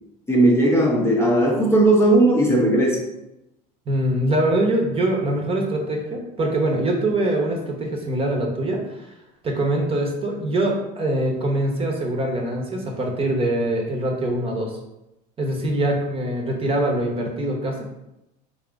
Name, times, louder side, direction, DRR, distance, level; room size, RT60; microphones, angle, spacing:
voice 1, 0.3-3.0, right 1 dB, 15° left, -3 dB, 0.7 m, -17 dB
voice 2, 3.9-9.1 9.4-14.7 15.4-17.8, right 1 dB, 30° right, 1 dB, 0.9 m, -23 dB
3.9 x 2.7 x 3.5 m, 0.89 s
supercardioid pair, 110°, 19 cm